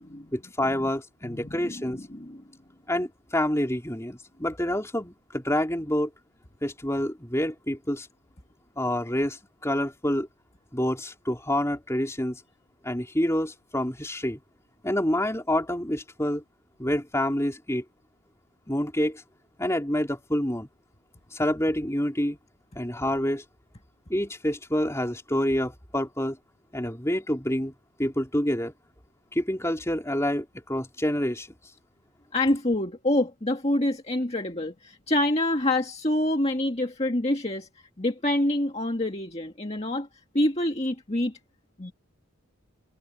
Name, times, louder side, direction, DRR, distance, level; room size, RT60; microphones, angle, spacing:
voice 1, 0.3-2.0 2.9-6.1 6.6-8.1 8.8-10.3 10.7-12.4 12.8-14.4 14.8-16.4 16.8-17.8 18.7-19.2 19.6-20.7 21.3-22.4 22.8-23.4 24.1-26.4 26.7-27.7 28.0-28.7 29.3-31.5, left 1 dB, 10° left, 3.9 m, -27 dB
voice 2, 1.2-2.4 32.3-37.7 38.0-40.1 40.3-41.4 41.8-41.9, left 1 dB, 30° left, 1.8 m, -26 dB
head